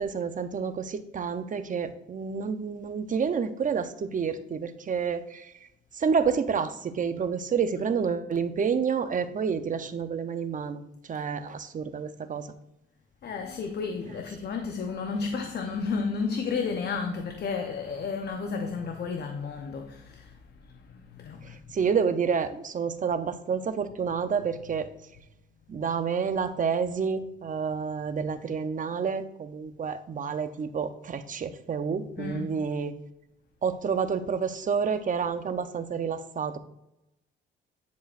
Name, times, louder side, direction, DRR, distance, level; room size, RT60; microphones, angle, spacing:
voice 1, 0.0-5.5 5.9-10.8 11.1-12.5 21.4-24.9 25.7-32.9 33.6-36.6, right 6 dB, 40° right, 0.8 m, -29 dB
voice 2, 13.2-21.7 32.2-32.6, left 5 dB, 55° left, 0.9 m, -32 dB
10.5 x 6.1 x 2.6 m
cardioid pair, 90°, 20 cm